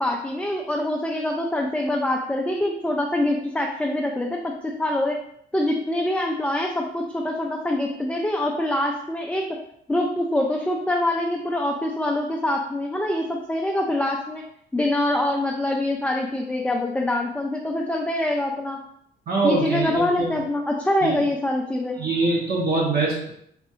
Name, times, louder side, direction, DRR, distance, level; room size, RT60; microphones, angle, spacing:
voice 1, 0.0-5.2 5.5-9.6 9.9-14.4 14.7-18.8 19.4-22.0, left 1 dB, 5° left, 0 dB, 0.4 m, -25 dB
voice 2, 19.3-20.4 21.0-21.2 22.0-23.3, right 3 dB, 50° right, -4 dB, 1.1 m, -23 dB
4.0 x 2.5 x 3.0 m, 0.71 s
cardioid pair, 90°, 20 cm